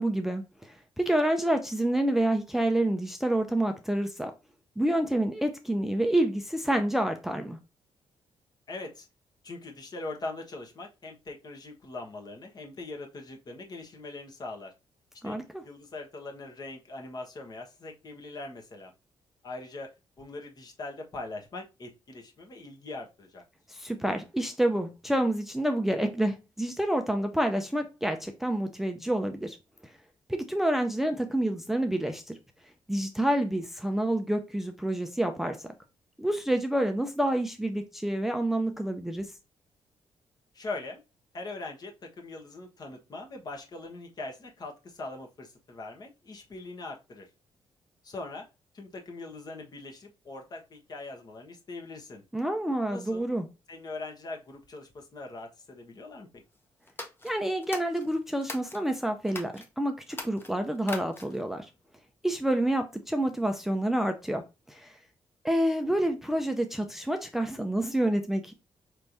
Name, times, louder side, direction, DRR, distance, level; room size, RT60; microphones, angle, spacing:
voice 1, 0.0-4.3 4.8-7.6 15.2-15.6 23.7-29.6 29.8-29.9 30.3-32.4 32.9-35.7 36.2-39.3 52.3-53.4 57.2-61.7 62.2-64.4 64.7-65.0 65.4-68.5, right 1 dB, 5° right, 0.4 m, -28 dB
voice 2, 8.7-9.1 9.4-14.7 15.2-18.9 19.4-23.4 40.5-41.0 41.3-47.3 48.0-48.5 48.7-52.2 52.9-53.2 53.7-56.3, left 2 dB, 45° left, 1.1 m, -41 dB
sound 1, 56.9-58.8 59.2-59.7 60.1-61.5, left 2 dB, 25° left, 0.8 m, -41 dB
4.5 x 3.3 x 2.6 m
cardioid pair, 120°, 10 cm